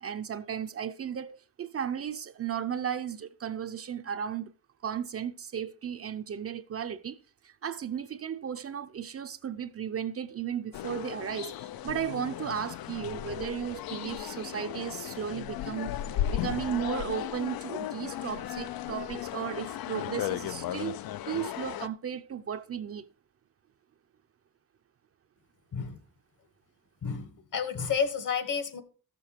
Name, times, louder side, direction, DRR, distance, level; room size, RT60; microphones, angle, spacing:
voice 1, 0.0-4.5 4.8-7.2 7.4-23.1, right 8 dB, 40° right, 0.5 m, -35 dB
sound 1, 10.7-21.9, left 12 dB, 80° left, 0.5 m, -36 dB
voice 2, 27.0-28.8, left 6 dB, 60° left, 1.6 m, -31 dB
14.0 x 6.8 x 4.4 m
wide cardioid pair, 175°, 36 cm